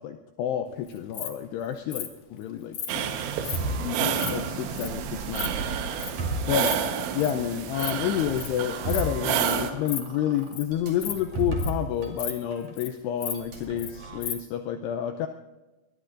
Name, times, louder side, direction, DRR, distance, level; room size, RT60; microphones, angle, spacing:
voice 1, 0.0-3.3 3.6-5.5 6.5-6.8 7.1-15.3, left 10 dB, 85° left, 6 dB, 2.4 m, -30 dB
Insect, 0.9-1.3 1.9-2.1 2.7-2.9 3.4-3.6 3.9-4.3 4.8-4.9 5.1-5.5 6.0-6.1 6.5-6.8 7.0-7.3 7.7-7.9 8.2-8.5 8.9-9.1 9.4-9.5 9.9-10.0 10.4-10.6 10.9-11.8 12.2-12.3 12.6-12.9 13.2-13.9 14.2-14.3, left 9 dB, 60° left, 2.6 m, -34 dB
sound 1, 2.9-9.7, right 8 dB, 80° right, 3.6 m, -30 dB
sound 2, 3.5-7.4 8.0-12.3 12.5-12.7 13.3-14.2, right 2 dB, 45° right, 2.9 m, -34 dB
23.5 x 20.0 x 2.5 m, 1.1 s
omnidirectional pair, 5.6 m